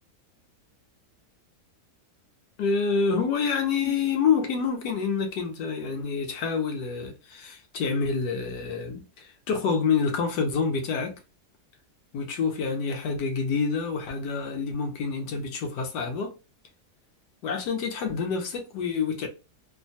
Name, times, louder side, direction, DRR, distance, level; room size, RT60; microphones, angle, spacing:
voice 1, 2.6-11.2 12.1-16.4 17.4-19.3, left 5 dB, 85° left, 1.3 m, -27 dB
3.0 x 2.2 x 2.6 m
omnidirectional pair, 1.8 m